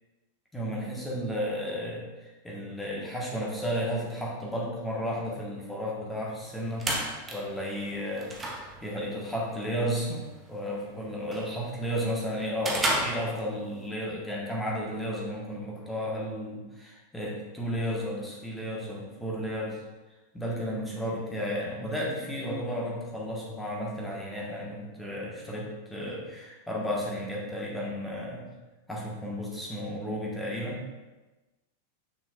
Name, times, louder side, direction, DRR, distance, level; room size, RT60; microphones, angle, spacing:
voice 1, 0.5-2.0 2.4-6.9 7.3-8.3 8.8-19.8 20.3-28.5 28.9-30.9, equal, 5° left, -4 dB, 1.7 m, -33 dB
sound 1, 6.4-13.9, right 1 dB, 15° right, 1.2 m, -35 dB
6.8 x 6.6 x 2.6 m, 1.1 s
figure-of-eight pair, 90°, 0 cm